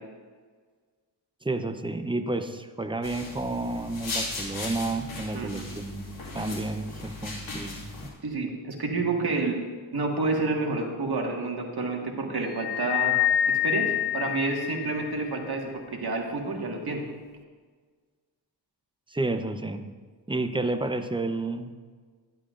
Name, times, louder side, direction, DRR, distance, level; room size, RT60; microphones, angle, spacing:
voice 1, 1.4-6.0 6.3-8.1 19.1-19.8 20.3-21.7, right 2 dB, 10° right, 8 dB, 0.7 m, -31 dB
sound 1, 3.0-8.1, left 3 dB, 85° left, 2.6 m, -37 dB
voice 2, 5.3-5.7 8.2-9.6 9.9-13.1 13.5-17.0, right 3 dB, 60° right, 0 dB, 1.8 m, -29 dB
sound 2, 12.6-15.2, left 11 dB, 65° left, 0.5 m, -26 dB
12.0 x 11.0 x 2.5 m, 1.5 s
cardioid pair, 70°, 44 cm